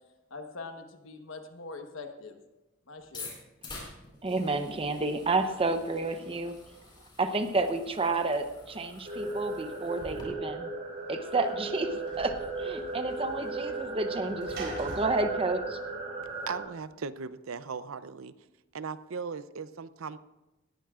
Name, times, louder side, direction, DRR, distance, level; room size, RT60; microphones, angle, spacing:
voice 1, 0.3-2.4 2.9-3.3, left 3 dB, 70° left, 5 dB, 1.2 m, -43 dB
sound 1, 3.0-10.2, left 3 dB, 25° left, 4.3 m, -48 dB
voice 2, 4.2-6.5 7.2-10.7 11.1-15.8, right 3 dB, 25° right, 7 dB, 0.7 m, -30 dB
sound 2, 9.1-16.6, right 3 dB, 45° right, 5.1 m, -36 dB
Sliding door / Slam, 10.8-16.6, right 2 dB, 60° right, 3.8 m, -46 dB
voice 3, 16.5-18.3 18.7-20.2, right 5 dB, 80° right, 14 dB, 0.6 m, -38 dB
19.0 x 14.5 x 2.5 m, 1.0 s
head